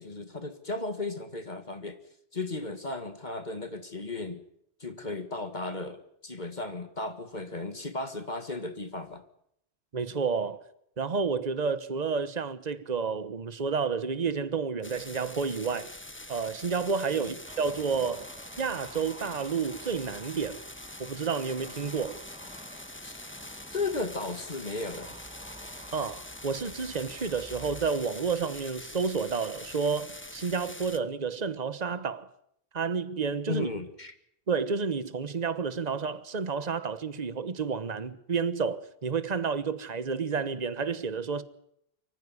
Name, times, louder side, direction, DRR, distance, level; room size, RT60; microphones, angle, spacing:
voice 1, 0.0-2.0 2.3-4.4 4.8-9.2 17.1-17.3 23.0-23.2 23.7-25.1 33.5-34.1, left 3 dB, 45° left, 2.0 m, -35 dB
voice 2, 9.9-10.6 11.0-15.9 16.3-18.3 18.6-20.6 21.0-22.2 25.9-32.3 32.7-33.7 34.5-41.4, right 5 dB, 40° right, 1.3 m, -30 dB
sound 1, 14.8-31.0, left 1 dB, 10° left, 1.1 m, -45 dB
sound 2, 17.5-27.9, equal, 5° right, 2.0 m, -49 dB
24.5 x 15.0 x 9.6 m
omnidirectional pair, 1.1 m